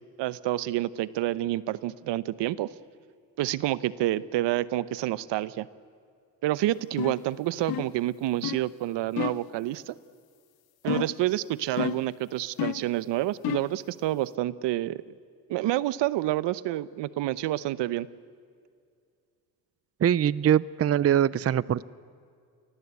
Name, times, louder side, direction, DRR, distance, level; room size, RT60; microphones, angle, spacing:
voice 1, 0.2-2.7 3.4-5.7 6.4-10.0 10.8-15.1 15.5-18.1, right 15 dB, 75° right, 18 dB, 0.9 m, -28 dB
sound 1, 7.0-7.3 7.7-8.0 8.4-8.7 9.2-9.5 10.9-11.3 11.8-12.1 12.6-12.9 13.4-13.8, left 13 dB, 55° left, 0.8 m, -31 dB
voice 2, 20.0-21.9, right 10 dB, 35° right, 21 dB, 0.6 m, -23 dB
28.0 x 20.0 x 8.3 m, 2.2 s
supercardioid pair, 70°, 43 cm